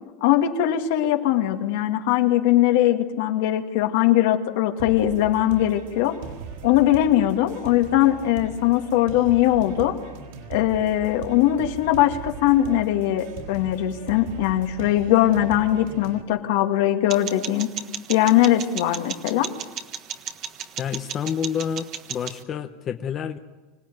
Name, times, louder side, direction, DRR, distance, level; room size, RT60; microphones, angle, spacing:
voice 1, 0.2-6.2 6.6-10.0 10.5-17.7 18.1-19.5, left 13 dB, 75° left, 5 dB, 2.2 m, -20 dB
sound 1, 4.8-16.2, right 6 dB, 65° right, 4.7 m, -39 dB
sound 2, 17.1-22.4, right 9 dB, 40° right, 1.4 m, -35 dB
voice 2, 20.8-23.4, left 8 dB, 30° left, 6 dB, 0.9 m, -29 dB
25.5 x 17.0 x 9.4 m, 1.2 s
supercardioid pair, 145°, 0 cm